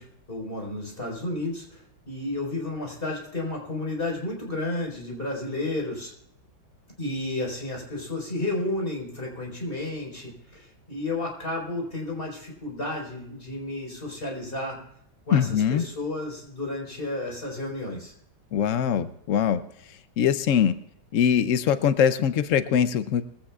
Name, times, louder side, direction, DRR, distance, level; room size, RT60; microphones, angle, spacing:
voice 1, 0.0-6.1 7.0-14.8 15.3-18.1, left 2 dB, 25° left, -1 dB, 4.6 m, -32 dB
voice 2, 15.3-15.8 18.5-19.6 20.2-20.7 21.1-23.2, left 8 dB, 85° left, 11 dB, 0.7 m, -22 dB
21.0 x 16.0 x 2.4 m, 0.70 s
omnidirectional pair, 2.2 m